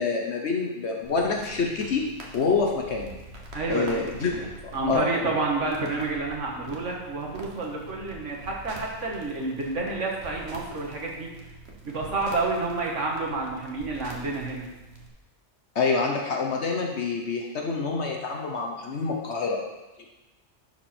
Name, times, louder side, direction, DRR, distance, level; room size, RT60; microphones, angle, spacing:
voice 1, 0.0-2.1 2.3-3.1 3.7-4.4 4.6-5.1 15.7-19.6, left 4 dB, 65° left, 1 dB, 1.1 m, -27 dB
sound 1, 1.0-15.1, right 2 dB, 60° right, 1.6 m, -45 dB
voice 2, 3.5-4.5 4.7-11.3 11.8-14.7, right 3 dB, 80° right, -1 dB, 1.9 m, -29 dB
11.5 x 4.9 x 4.3 m, 1.1 s
omnidirectional pair, 1.3 m